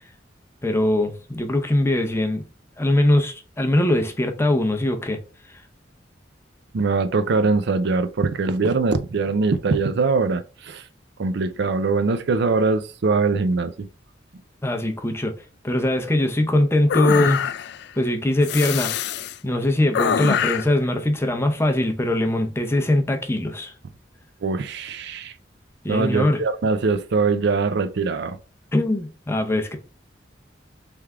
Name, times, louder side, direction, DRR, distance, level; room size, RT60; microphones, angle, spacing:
voice 1, 0.6-2.4 2.8-5.2 5.5-5.6 14.6-17.4 18.0-18.9 19.4-23.7 25.8-26.4 28.7-29.8, left 1 dB, 15° left, 0.6 m, -21 dB
voice 2, 6.7-10.8 11.2-13.9 24.4-25.3 25.9-28.4, right 4 dB, 65° right, 0.5 m, -22 dB
sound 1, 16.9-17.8 18.4-19.4 19.9-20.8, left 8 dB, 65° left, 0.3 m, -24 dB
3.5 x 3.3 x 3.5 m
head